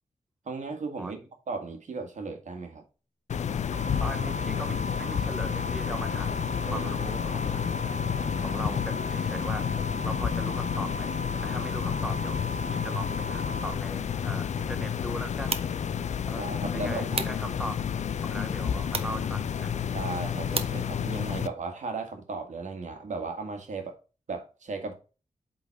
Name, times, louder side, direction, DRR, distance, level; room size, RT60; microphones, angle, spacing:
voice 1, 0.4-1.2 1.5-2.8 6.7-7.3 16.3-17.3 19.9-23.9 24.3-24.9, right 3 dB, 65° right, 1.8 m, -36 dB
sound 1, 3.3-21.5, left 8 dB, 60° left, 0.5 m, -30 dB
sound 2, 3.7-13.7, right 2 dB, 30° right, 1.7 m, -39 dB
voice 2, 4.0-7.6 8.4-12.4 12.7-15.6 16.3-16.4 16.7-17.8 18.2-19.8, right 1 dB, 5° right, 0.7 m, -40 dB
sound 3, 15.1-21.5, right 5 dB, 45° right, 0.8 m, -39 dB
8.0 x 4.0 x 4.0 m
wide cardioid pair, 105°, 13 cm